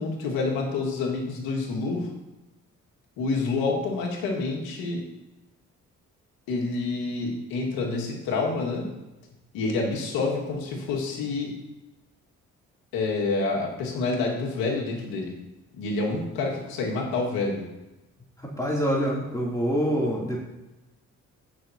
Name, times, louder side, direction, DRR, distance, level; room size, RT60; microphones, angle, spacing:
voice 1, 0.0-2.1 3.2-5.0 6.5-8.9 9.5-11.5 12.9-15.3 15.7-17.7, left 3 dB, 85° left, -2 dB, 2.0 m, -28 dB
voice 2, 18.4-20.4, equal, 10° left, -4 dB, 2.9 m, -26 dB
16.0 x 6.1 x 2.9 m, 1.0 s
supercardioid pair, 45°, 35 cm